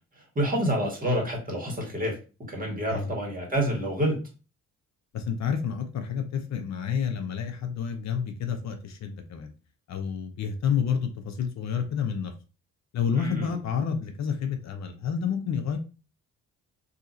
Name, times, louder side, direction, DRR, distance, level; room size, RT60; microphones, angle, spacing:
voice 1, 0.2-2.2 2.5-4.3 13.1-13.5, equal, 30° right, 0 dB, 1.6 m, -28 dB
voice 2, 5.1-9.5 9.9-12.3 12.9-15.8, left 7 dB, 65° left, 6 dB, 0.7 m, -29 dB
2.8 x 2.8 x 3.8 m, 0.33 s
cardioid pair, 90°, 30 cm